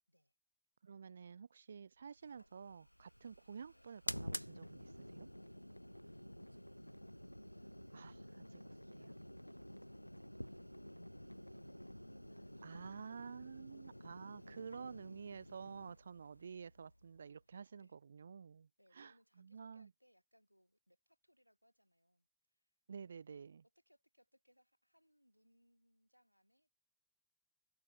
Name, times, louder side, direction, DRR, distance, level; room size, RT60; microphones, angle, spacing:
voice 1, 0.8-5.3 7.9-8.2 12.6-19.9 22.9-23.6, right 6 dB, 70° right, 0.6 m, -51 dB
sound 1, 2.2-17.5, equal, 90° left, 0.4 m, -51 dB
voice 2, 6.0-7.2 7.6-13.1 14.4-14.6 17.5-18.0 18.8-23.2 23.8-26.7, equal, 90° right, 7.2 m, -74 dB
figure-of-eight pair, 90°, 0 cm